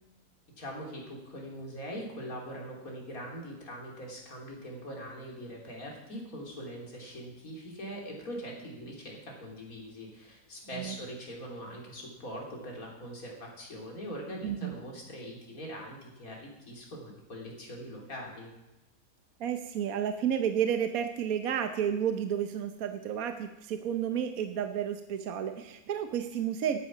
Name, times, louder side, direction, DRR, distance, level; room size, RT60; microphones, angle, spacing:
voice 1, 0.6-18.5, equal, 60° left, -1 dB, 3.6 m, -42 dB
voice 2, 19.4-26.8, right 9 dB, 65° right, 7 dB, 1.2 m, -31 dB
14.0 x 9.6 x 6.1 m, 0.96 s
omnidirectional pair, 1.7 m